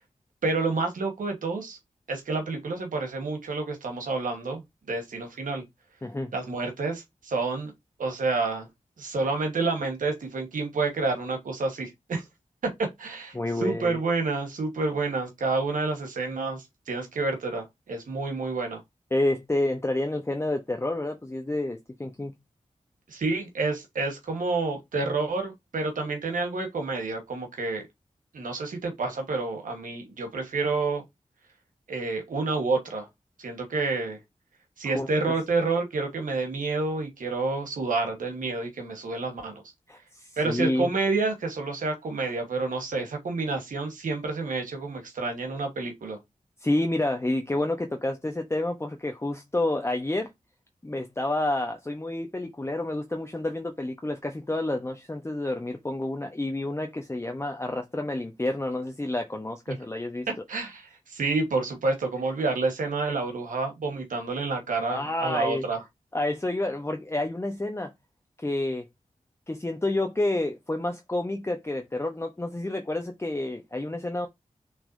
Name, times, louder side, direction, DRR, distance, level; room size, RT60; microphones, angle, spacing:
voice 1, 0.4-1.8 2.1-4.6 4.9-5.6 6.3-7.7 8.0-8.7 9.0-12.2 12.8-18.8 23.1-27.8 28.3-31.0 31.9-33.1 33.4-34.2 34.8-39.6 40.4-46.2 60.5-65.8, right 3 dB, 90° right, 1.3 m, -29 dB
voice 2, 6.0-6.3 13.3-14.0 19.1-22.3 34.8-35.1 39.9-40.9 46.6-50.3 50.8-60.3 64.8-65.7 66.1-67.9 68.4-68.8 69.5-74.3, left 2 dB, 20° left, 0.8 m, -29 dB
6.2 x 3.2 x 2.6 m
cardioid pair, 40°, 13 cm